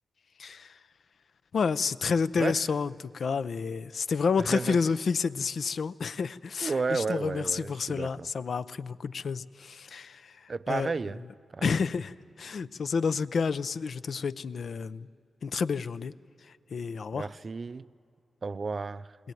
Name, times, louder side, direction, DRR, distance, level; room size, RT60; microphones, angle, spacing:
voice 1, 0.4-0.7 1.5-10.3 10.7-10.9 11.6-15.1 15.4-16.1 16.7-17.3, left 5 dB, 70° left, 0.5 m, -30 dB
voice 2, 2.4-2.7 4.4-4.8 6.6-8.3 10.5-11.2 11.5-11.7 17.1-17.8 18.4-19.2, right 4 dB, 45° right, 0.5 m, -32 dB
21.5 x 18.0 x 9.2 m
cardioid pair, 70°, 0 cm